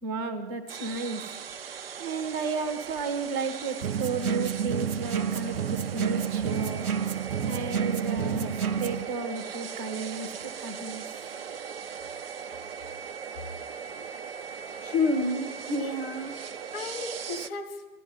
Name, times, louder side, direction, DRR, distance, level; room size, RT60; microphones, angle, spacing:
voice 1, 0.0-1.2 2.0-6.9 7.4-11.0, right 4 dB, 15° right, 6 dB, 0.7 m, -33 dB
sound 1, 0.7-17.5, right 7 dB, 45° right, 0.5 m, -39 dB
sound 2, 3.8-9.0, right 7 dB, 75° right, 0.7 m, -29 dB
voice 2, 14.8-16.4 16.7-17.7, left 2 dB, 40° left, 4 dB, 2.1 m, -29 dB
12.5 x 11.5 x 9.2 m, 1.2 s
figure-of-eight pair, 125°, 44 cm